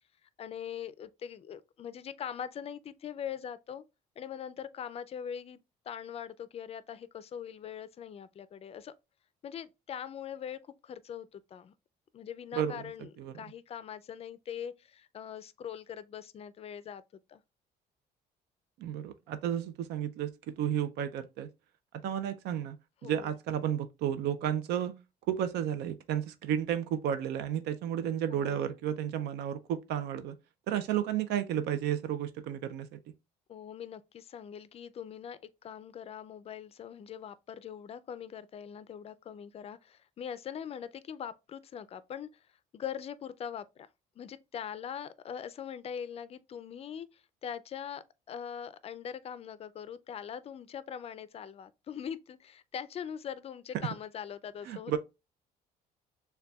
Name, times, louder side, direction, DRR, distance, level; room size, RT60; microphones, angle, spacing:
voice 1, 0.2-3.8 4.2-8.9 9.4-11.7 12.1-17.0 17.3-17.4 23.0-23.3 28.3-28.7 33.5-42.5 42.7-43.9 44.2-54.9, left 8 dB, 35° left, 0.4 m, -42 dB
voice 2, 12.5-12.8 13.2-13.3 18.8-21.5 22.0-22.8 23.0-25.0 25.3-30.3 30.7-33.0 54.7-55.0, right 10 dB, 75° right, 0.5 m, -32 dB
6.7 x 2.2 x 2.2 m
cardioid pair, 110°, 17 cm